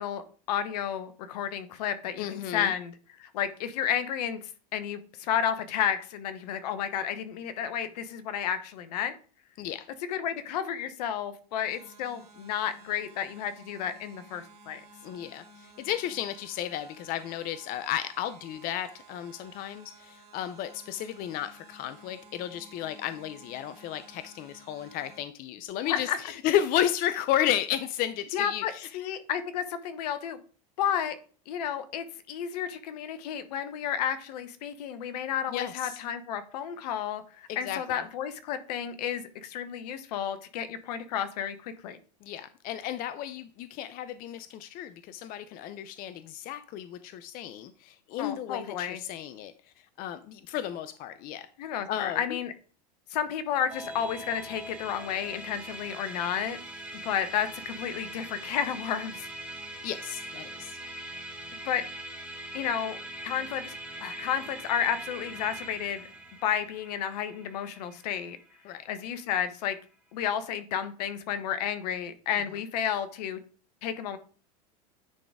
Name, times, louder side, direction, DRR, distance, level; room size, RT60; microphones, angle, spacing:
voice 1, 0.0-2.9 3.2-9.2 10.1-14.8 25.9-26.2 28.3-30.4 30.8-31.1 31.5-42.0 48.2-49.0 51.6-52.5 53.1-56.6 57.0-59.3 61.6-61.8 62.5-63.0 63.2-63.7 64.0-66.1 66.4-68.4 68.9-69.8 70.1-73.4 73.8-74.2, left 9 dB, 70° left, 1.0 m, -32 dB
voice 2, 2.2-2.7 9.6-9.9 15.0-29.1 35.5-36.0 37.5-38.0 42.2-51.5 51.9-52.4 59.8-60.8 68.6-68.9, left 11 dB, 45° left, 0.5 m, -33 dB
sound 1, 11.7-25.2, right 2 dB, 30° right, 2.1 m, -54 dB
Musical instrument, 53.7-69.2, right 1 dB, 5° right, 1.7 m, -42 dB
9.8 x 3.9 x 3.5 m
hypercardioid pair, 95°, 21 cm